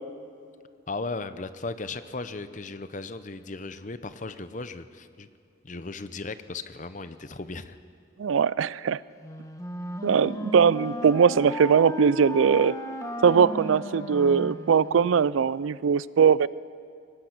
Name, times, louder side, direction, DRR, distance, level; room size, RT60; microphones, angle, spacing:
voice 1, 0.9-5.3 5.6-7.8, left 3 dB, 40° left, 12 dB, 0.7 m, -36 dB
voice 2, 8.2-9.0 10.0-12.8 13.2-16.5, right 6 dB, 80° right, 20 dB, 0.4 m, -21 dB
Wind instrument woodwind instrument, 9.2-15.3, right 1 dB, 15° left, 1.1 m, -35 dB
23.5 x 18.5 x 6.0 m, 2.4 s
head